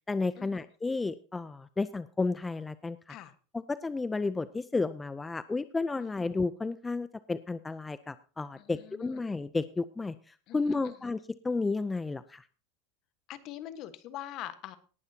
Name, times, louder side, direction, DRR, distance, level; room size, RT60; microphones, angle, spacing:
voice 1, 0.1-3.2 3.5-11.2 11.4-12.4, left 3 dB, 15° left, 15 dB, 0.5 m, -32 dB
voice 2, 8.6-9.2 10.5-10.9 13.3-14.8, left 12 dB, 50° left, 12 dB, 1.3 m, -43 dB
18.5 x 11.5 x 2.8 m, 0.37 s
supercardioid pair, 115°, 0 cm